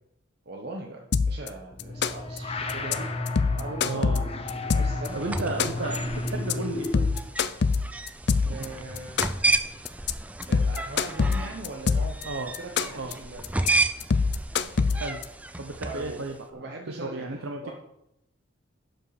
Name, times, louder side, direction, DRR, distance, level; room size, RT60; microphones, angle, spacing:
voice 1, 0.5-3.1 3.6-4.1 4.7-5.9 8.4-9.4 10.5-13.7 15.8-16.2 16.5-17.7, right 2 dB, 50° right, 1 dB, 0.9 m, -39 dB
sound 1, 1.1-1.5 1.8-2.4 2.7-2.9 3.3-5.1 5.4-6.0 6.3-6.5 6.8-8.6 9.0-9.5 9.8-10.1 10.4-12.2 12.5-13.1 13.4-13.7 14.0-15.2, left 5 dB, 55° left, 0.4 m, -24 dB
sound 2, 1.7-7.3, left 2 dB, 30° left, 0.8 m, -33 dB
voice 2, 3.8-4.2 5.1-6.0 6.3-7.1 12.2-12.5 12.9-13.1 14.9-15.2 15.6-17.7, right 2 dB, 80° right, 3 dB, 0.8 m, -34 dB
sound 3, 5.0-16.4, right 2 dB, 5° right, 0.4 m, -32 dB
11.5 x 5.3 x 4.9 m, 0.81 s
head